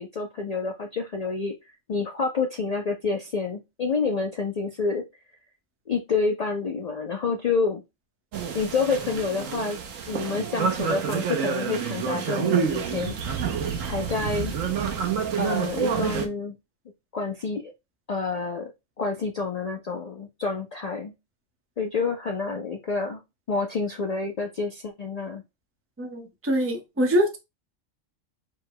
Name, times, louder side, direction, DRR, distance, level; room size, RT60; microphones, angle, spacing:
voice 1, 0.0-1.5 1.9-5.0 5.9-7.8 8.5-9.8 10.1-13.2 13.9-14.6 15.4-16.6 17.1-17.7 18.1-18.7 19.0-21.1 21.8-23.2 23.5-25.4, left 4 dB, 75° left, 4 dB, 0.3 m, -28 dB
sound 1, 8.3-16.3, right 7 dB, 80° right, 1.2 m, -28 dB
voice 2, 26.0-27.4, equal, 10° right, 2 dB, 0.7 m, -24 dB
4.6 x 2.2 x 4.7 m, 0.24 s
omnidirectional pair, 1.3 m